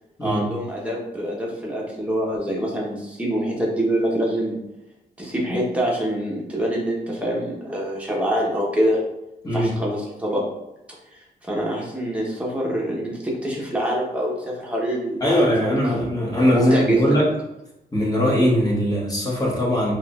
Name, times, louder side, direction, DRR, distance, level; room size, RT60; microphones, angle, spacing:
voice 1, 0.2-4.6 5.2-9.0 9.4-10.4 11.1-16.0 16.5-17.0, right 1 dB, 10° right, -4 dB, 1.1 m, -25 dB
voice 2, 15.2-17.3 17.9-19.9, equal, 25° left, -4 dB, 1.3 m, -20 dB
4.6 x 2.6 x 2.4 m, 0.91 s
wide cardioid pair, 105°, 15 cm